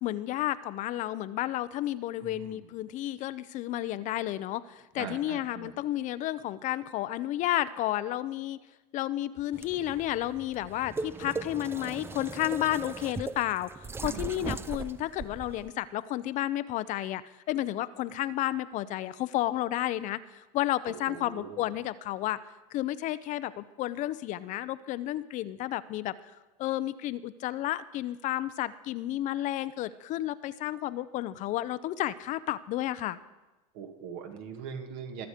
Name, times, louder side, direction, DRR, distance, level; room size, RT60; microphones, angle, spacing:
voice 1, 0.0-8.6 8.9-17.2 17.5-22.4 22.7-26.1 26.6-33.2, left 14 dB, 45° left, 15 dB, 0.5 m, -32 dB
voice 2, 2.2-2.7 5.0-5.7 14.0-14.7 20.9-21.7 33.7-35.3, right 7 dB, 65° right, 5 dB, 2.0 m, -42 dB
sound 1, 9.5-15.7, right 4 dB, 15° right, 0.5 m, -39 dB
23.5 x 7.9 x 5.0 m, 1.1 s
supercardioid pair, 115°, 18 cm